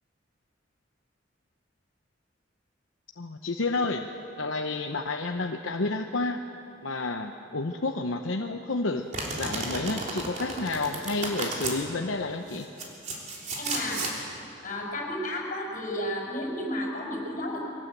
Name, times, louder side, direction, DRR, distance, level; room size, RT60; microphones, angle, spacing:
voice 1, 3.2-4.1 4.4-6.4 6.8-9.0 9.4-12.7, left 3 dB, 80° left, 4 dB, 0.9 m, -30 dB
Domestic sounds home sounds, 9.1-11.8 12.5-14.2, right 2 dB, 40° right, 3.4 m, -33 dB
voice 2, 13.6-14.0 14.6-17.6, left 1 dB, 45° left, -1 dB, 5.9 m, -32 dB
23.0 x 18.0 x 7.9 m, 2.9 s
head